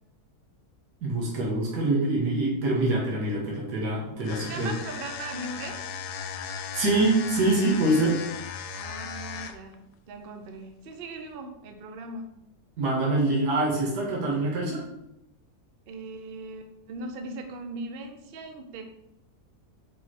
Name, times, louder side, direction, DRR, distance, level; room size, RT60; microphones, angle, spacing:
voice 1, 1.0-4.7 6.7-8.2 12.8-14.8, right 2 dB, 80° right, -4 dB, 2.0 m, -25 dB
sound 1, 4.2-9.7, left 7 dB, 80° left, 1.1 m, -37 dB
voice 2, 4.5-5.8 8.7-9.8 10.1-12.3 15.9-18.8, right 2 dB, 50° right, 5 dB, 0.7 m, -39 dB
4.7 x 4.2 x 4.6 m, 0.82 s
omnidirectional pair, 1.7 m